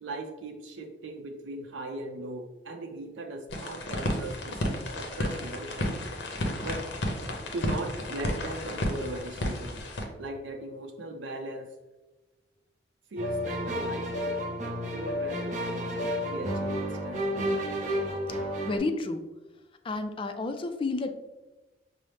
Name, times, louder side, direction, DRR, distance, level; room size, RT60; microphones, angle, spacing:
voice 1, 0.0-6.0 6.6-6.8 7.5-9.8 10.2-11.7 13.1-14.5 14.9-17.6, right 2 dB, 90° right, 3 dB, 0.5 m, -39 dB
sound 1, 3.5-10.0, left 1 dB, 70° left, 0.7 m, -32 dB
sound 2, 13.2-18.8, equal, 45° right, 0.7 m, -31 dB
voice 2, 18.6-19.2 19.8-21.1, left 3 dB, 30° left, 7 dB, 0.3 m, -30 dB
5.4 x 2.0 x 3.2 m, 1.1 s
head